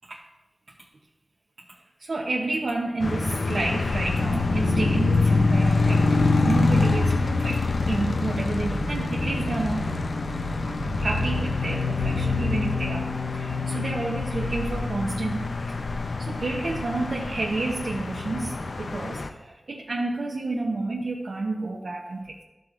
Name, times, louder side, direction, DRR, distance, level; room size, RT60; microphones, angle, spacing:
voice 1, 2.1-6.1 6.5-7.6 7.9-9.9 11.0-13.1 13.4-15.4 16.3-18.5 18.8-19.2 19.7-22.2, right 2 dB, 75° right, -2 dB, 0.9 m, -29 dB
sound 1, 3.0-19.3, left 3 dB, 80° left, 0.7 m, -25 dB
sound 2, 4.3-15.1, right 1 dB, 30° right, 0.8 m, -39 dB
13.5 x 7.7 x 2.6 m, 1.0 s
wide cardioid pair, 85°, 0 cm